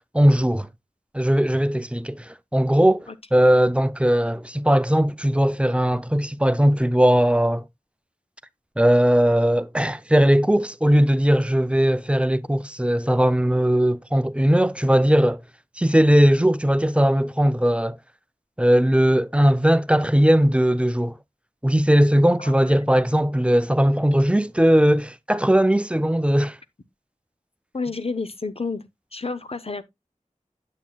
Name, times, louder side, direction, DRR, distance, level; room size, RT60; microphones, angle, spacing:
voice 1, 0.1-0.7 1.1-2.2 2.5-7.6 8.8-15.4 15.8-18.0 18.6-21.1 21.6-26.6, equal, 10° right, 0.4 m, -19 dB
voice 2, 22.4-22.9 27.7-29.8, left 4 dB, 45° left, 0.7 m, -31 dB
9.0 x 7.4 x 2.2 m
wide cardioid pair, 45°, 13 cm